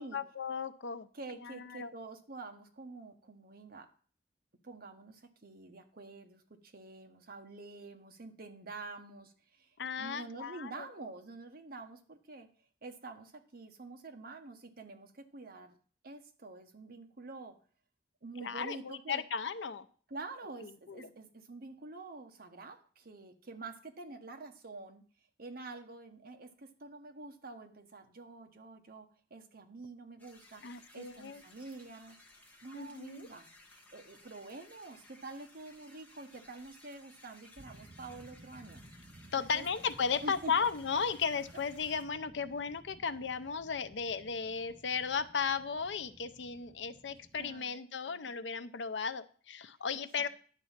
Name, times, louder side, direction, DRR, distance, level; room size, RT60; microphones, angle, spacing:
voice 1, 0.0-1.1 1.4-1.9 9.8-10.9 18.4-19.9 20.6-21.1 30.6-31.4 32.7-33.3 39.3-50.3, left 6 dB, 80° left, 12 dB, 0.6 m, -35 dB
voice 2, 1.1-3.9 4.6-12.5 12.8-15.8 16.0-17.5 18.2-19.2 20.1-25.0 25.4-30.6 30.9-32.2 32.6-33.5 33.9-38.8 39.4-39.7 40.2-40.5 47.1-47.8 48.0-48.3 50.2-50.3, right 3 dB, 55° right, 5 dB, 1.1 m, -47 dB
sound 1, 30.2-42.0, left 2 dB, 10° left, 1.6 m, -59 dB
sound 2, 37.6-47.6, right 1 dB, 30° right, 0.5 m, -57 dB
10.5 x 4.1 x 7.3 m, 0.43 s
head